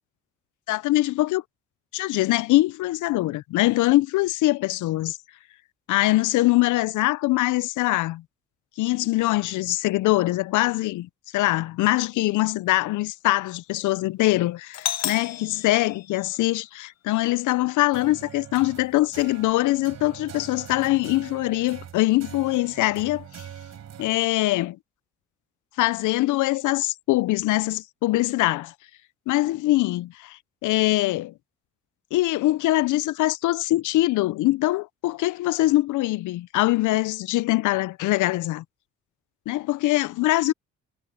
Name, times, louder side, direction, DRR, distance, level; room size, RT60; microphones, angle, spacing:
voice 1, 0.7-1.4 1.9-5.2 5.9-8.2 8.8-23.5 24.0-24.8 25.8-28.7 29.3-31.3 32.1-38.6 39.5-40.5, left 18 dB, 80° left, 0.6 m, -23 dB
Doorbell, 14.7-16.7, left 10 dB, 60° left, 1.1 m, -33 dB
sound 1, 17.9-24.1, right 9 dB, 65° right, 5.1 m, -43 dB
cardioid pair, 90°, 30 cm